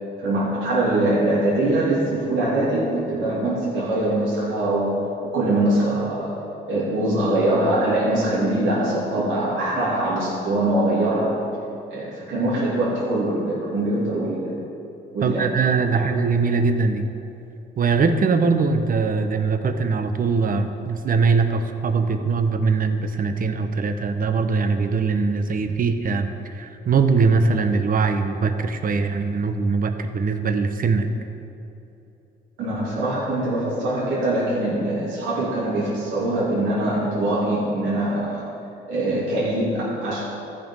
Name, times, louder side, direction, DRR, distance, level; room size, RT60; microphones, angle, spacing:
voice 1, 0.2-6.3 6.7-11.3 11.9-14.6 15.1-15.5 32.6-38.4 38.9-40.2, right 1 dB, 80° right, -8 dB, 2.6 m, -23 dB
voice 2, 15.2-17.0 17.8-31.1, right 4 dB, 45° right, 7 dB, 0.9 m, -21 dB
14.0 x 5.3 x 5.5 m, 3.0 s
cardioid pair, 90°, 20 cm